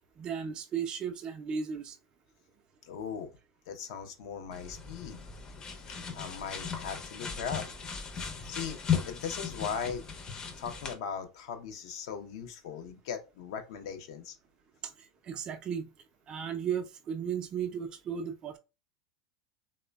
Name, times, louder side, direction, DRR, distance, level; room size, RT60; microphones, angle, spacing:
voice 1, 0.2-2.0 8.2-8.3 14.8-15.9 16.3-18.6, right 7 dB, 30° right, 0.4 m, -35 dB
voice 2, 2.9-3.3 3.7-5.2 6.1-7.7 8.4-8.8 9.1-10.0 10.6-14.4, left 7 dB, 70° left, 0.5 m, -38 dB
sound 1, 4.5-10.9, left 7 dB, 30° left, 0.5 m, -36 dB
3.2 x 2.1 x 2.2 m
supercardioid pair, 115°, 3 cm